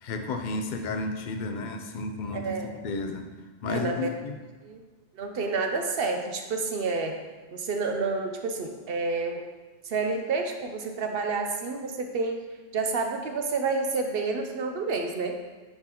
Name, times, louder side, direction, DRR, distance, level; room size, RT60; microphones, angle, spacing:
voice 1, 0.0-3.3 3.6-4.4, left 3 dB, 55° left, 5 dB, 0.6 m, -32 dB
voice 2, 2.3-2.7 3.7-4.1 4.6-4.8 5.1-7.2 7.5-9.4 9.8-12.4 12.7-15.4, right 4 dB, 60° right, 4 dB, 0.9 m, -29 dB
9.5 x 3.8 x 3.0 m, 1.3 s
omnidirectional pair, 1.1 m